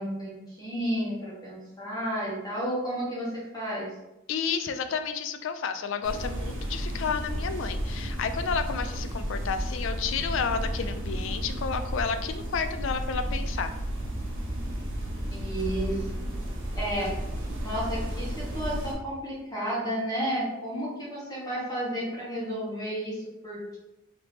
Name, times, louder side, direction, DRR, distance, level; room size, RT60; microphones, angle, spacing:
voice 1, 0.0-3.9 15.3-16.1 16.7-17.1 17.6-23.8, equal, 20° left, -7 dB, 1.1 m, -32 dB
voice 2, 4.3-13.7, left 6 dB, 65° left, 9 dB, 0.3 m, -31 dB
sound 1, 6.0-18.9, equal, 60° right, 0.9 m, -32 dB
3.3 x 2.8 x 4.1 m, 0.94 s
head